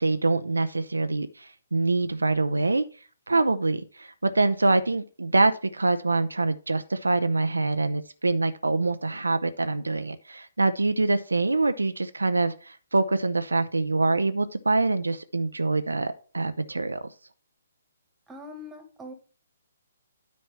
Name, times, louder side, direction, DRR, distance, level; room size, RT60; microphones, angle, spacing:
voice 1, 0.0-2.8 3.3-17.1, right 3 dB, 80° right, 10 dB, 0.7 m, -25 dB
voice 2, 18.3-19.1, left 1 dB, 10° right, 5 dB, 1.8 m, -42 dB
9.5 x 4.4 x 5.6 m, 0.37 s
figure-of-eight pair, 130°, 0 cm